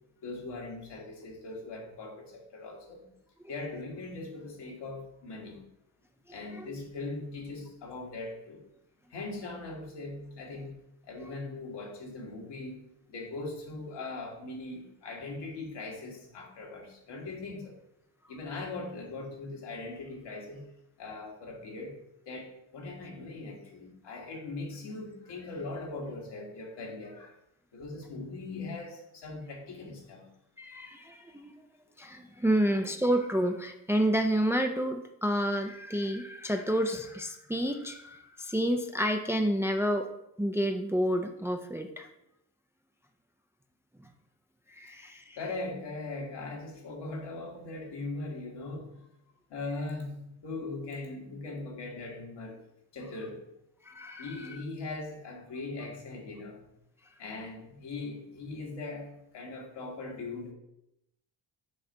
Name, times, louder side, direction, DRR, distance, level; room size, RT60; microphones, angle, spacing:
voice 1, 0.2-3.0 3.5-5.6 6.3-8.6 9.1-10.8 11.0-17.7 18.3-20.7 21.0-22.0 22.3-27.4 27.7-30.3 45.4-49.1 49.5-52.6 52.9-53.4 54.2-56.7 57.2-60.5, left 3 dB, 70° left, -1 dB, 1.8 m, -40 dB
voice 2, 6.3-6.8 30.6-31.5 32.0-40.1 40.4-42.1 44.7-45.4 53.8-54.6, equal, 5° right, 4 dB, 0.5 m, -30 dB
6.3 x 3.3 x 5.3 m, 0.83 s
cardioid pair, 70°, 43 cm